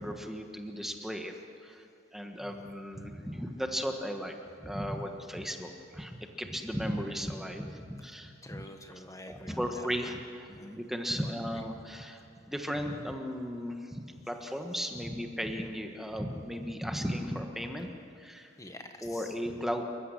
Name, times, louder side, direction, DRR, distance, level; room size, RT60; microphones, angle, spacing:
voice 1, 0.0-1.3 1.6-1.9 2.1-4.3 4.6-8.6 9.3-17.9 18.2-18.5 19.0-19.8, equal, ahead, 4 dB, 1.4 m, -36 dB
voice 2, 8.4-10.2 10.5-10.8 11.2-11.7 18.6-19.3, left 1 dB, 15° left, 5 dB, 1.4 m, -48 dB
27.0 x 15.0 x 10.0 m, 2.6 s
head